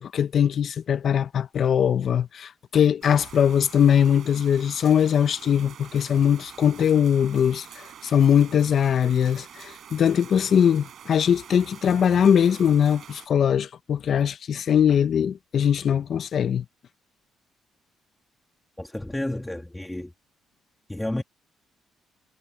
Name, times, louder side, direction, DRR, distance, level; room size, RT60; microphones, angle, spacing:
voice 1, 0.0-16.6, left 8 dB, 50° left, 0.7 m, -21 dB
sound 1, 3.0-13.3, right 9 dB, 60° right, 6.7 m, -46 dB
voice 2, 18.8-20.1 20.9-21.2, left 1 dB, 10° left, 2.2 m, -31 dB
cardioid pair, 110°, 0 cm